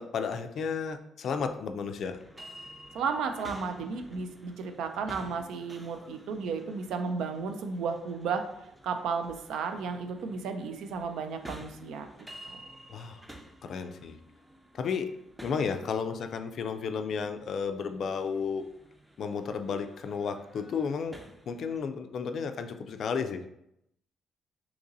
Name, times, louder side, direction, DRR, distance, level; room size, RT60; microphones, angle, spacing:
voice 1, 0.0-2.2 12.9-13.2 13.6-14.2 14.7-15.1 15.4-18.6 19.2-21.2 21.5-23.5, left 6 dB, 65° left, 8 dB, 0.3 m, -33 dB
sound 1, 2.1-21.8, equal, 10° right, 0.5 m, -51 dB
voice 2, 2.9-8.4 8.8-12.1 12.5-12.6, right 5 dB, 85° right, 6 dB, 0.3 m, -33 dB
2.9 x 2.6 x 3.8 m, 0.80 s
cardioid pair, 90°, 0 cm